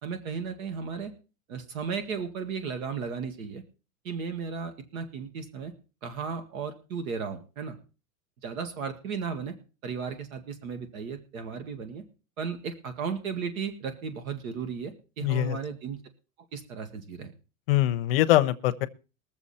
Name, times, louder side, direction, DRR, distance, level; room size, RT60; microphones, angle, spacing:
voice 1, 0.0-1.1 1.5-3.6 4.0-5.7 6.0-7.8 8.4-9.5 9.8-12.0 12.4-16.0 16.5-17.3, right 6 dB, 65° right, 2.0 m, -35 dB
voice 2, 15.2-15.6 17.7-18.9, left 15 dB, 40° left, 0.8 m, -23 dB
21.5 x 7.3 x 4.2 m
supercardioid pair, 175°, 45 cm